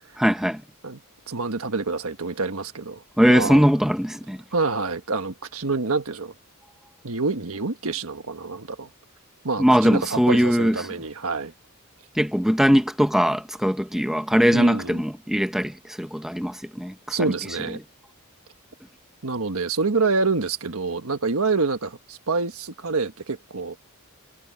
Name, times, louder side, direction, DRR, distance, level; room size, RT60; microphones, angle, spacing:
voice 1, 0.2-0.6 3.2-4.4 9.6-10.8 12.1-17.3, equal, ahead, 1.0 m, -20 dB
voice 2, 1.3-3.6 4.5-6.3 7.0-8.9 9.4-11.5 14.5-15.0 17.1-17.8 19.2-23.8, right 4 dB, 70° right, 1.5 m, -27 dB
head